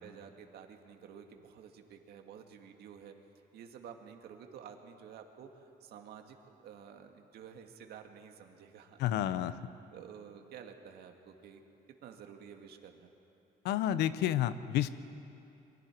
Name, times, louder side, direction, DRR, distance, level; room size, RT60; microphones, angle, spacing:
voice 1, 0.0-3.2 3.5-6.4 6.6-9.6 9.9-11.6 12.0-13.1, right 7 dB, 70° right, 4 dB, 2.0 m, -51 dB
voice 2, 9.0-9.6 13.6-14.9, left 12 dB, 80° left, 14 dB, 0.8 m, -30 dB
28.0 x 23.5 x 4.6 m, 2.7 s
cardioid pair, 110°, 17 cm